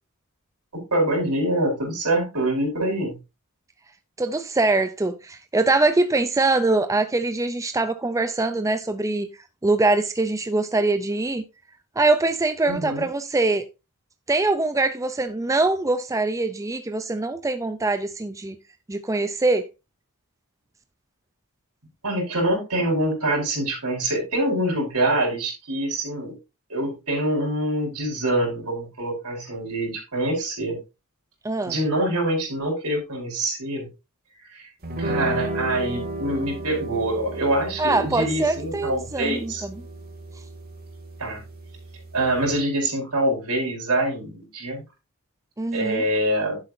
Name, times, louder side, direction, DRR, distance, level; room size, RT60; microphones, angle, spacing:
voice 1, 0.9-3.2 12.7-13.0 22.0-26.3 26.7-30.8 31.6-33.9 34.5-34.7 35.0-39.6 41.2-41.4 42.1-44.8 45.7-46.6, right 1 dB, 85° right, 4.8 m, -25 dB
voice 2, 4.2-9.3 9.6-11.4 12.0-13.7 14.3-18.6 18.9-19.7 31.4-31.7 37.8-39.8 45.6-46.1, right 2 dB, 15° right, 0.5 m, -23 dB
sound 1, 34.8-42.6, right 2 dB, 45° right, 2.4 m, -34 dB
11.0 x 8.1 x 2.7 m
head